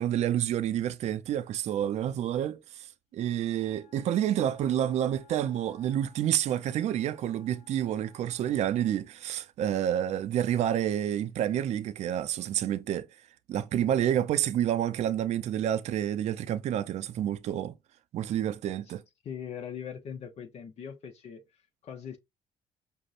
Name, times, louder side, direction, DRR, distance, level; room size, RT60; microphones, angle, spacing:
voice 1, 0.0-13.1 13.5-17.7 18.1-19.0, right 10 dB, 60° right, 0.4 m, -29 dB
Wind instrument woodwind instrument, 3.1-9.1, left 7 dB, 80° left, 0.9 m, -60 dB
voice 2, 19.2-22.2, left 8 dB, 60° left, 0.7 m, -41 dB
5.1 x 2.1 x 2.4 m
supercardioid pair, 75°, 13 cm